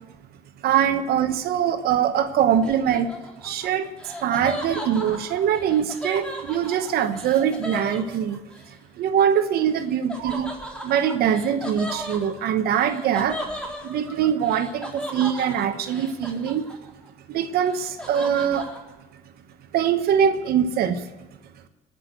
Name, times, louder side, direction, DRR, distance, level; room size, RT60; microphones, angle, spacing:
voice 1, 0.6-3.1 3.4-8.4 8.7-10.5 10.8-13.4 13.8-16.7 17.3-18.7 19.7-21.1, right 8 dB, 70° right, 10 dB, 1.0 m, -23 dB
Laughter, 2.6-8.7 10.1-17.1 17.4-18.8, equal, 5° left, 3.8 m, -36 dB
19.5 x 6.6 x 7.8 m, 1.0 s
supercardioid pair, 80°, 17 cm